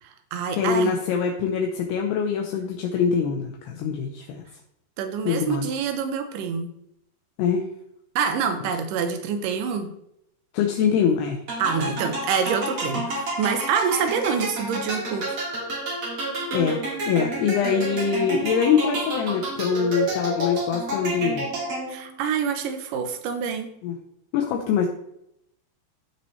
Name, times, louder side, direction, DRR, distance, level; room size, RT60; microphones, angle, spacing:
voice 1, 0.0-1.0 5.0-6.7 8.2-9.9 11.6-15.4 21.9-23.7, right 6 dB, 80° right, 7 dB, 1.9 m, -26 dB
voice 2, 0.5-4.4 5.3-5.7 7.4-7.7 10.5-11.4 16.5-16.8 17.1-21.5 23.8-24.0 24.3-24.9, left 7 dB, 75° left, 2 dB, 2.8 m, -23 dB
sound 1, 11.5-22.1, right 1 dB, 40° right, 2.2 m, -29 dB
15.0 x 5.8 x 3.2 m, 0.76 s
omnidirectional pair, 5.0 m